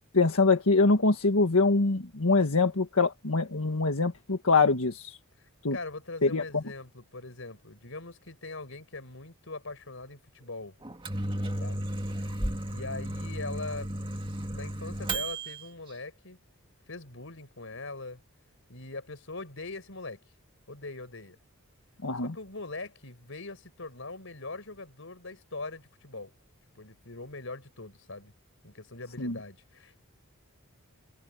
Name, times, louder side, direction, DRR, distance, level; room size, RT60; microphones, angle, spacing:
voice 1, 0.1-5.2 5.6-5.8 6.2-6.4 22.0-22.3 29.2-29.3, left 3 dB, 80° left, 1.6 m, -24 dB
voice 2, 5.4-10.8 11.6-11.8 12.3-12.4 12.7-13.9 14.5-16.4 16.9-18.2 18.7-20.2 20.7-21.4 22.2-26.3 26.7-28.3 28.6-30.0, left 3 dB, 65° left, 5.2 m, -41 dB
Microwave oven, 10.8-15.6, right 1 dB, 25° right, 2.0 m, -34 dB
head